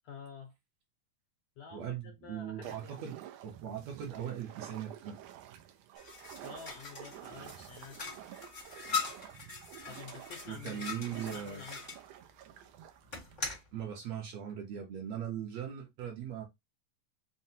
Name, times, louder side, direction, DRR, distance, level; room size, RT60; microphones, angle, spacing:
voice 1, 0.0-0.5 1.6-3.0 6.4-8.0 9.9-11.8, left 6 dB, 75° left, 1.6 m, -49 dB
voice 2, 1.7-3.2 3.4-5.2 10.5-11.6 13.7-16.5, right 9 dB, 70° right, 1.7 m, -39 dB
sound 1, 2.6-13.6, right 12 dB, 85° right, 1.4 m, -50 dB
sound 2, 5.9-12.0 13.1-13.7, left 5 dB, 40° left, 0.7 m, -41 dB
5.8 x 2.1 x 2.7 m
omnidirectional pair, 3.5 m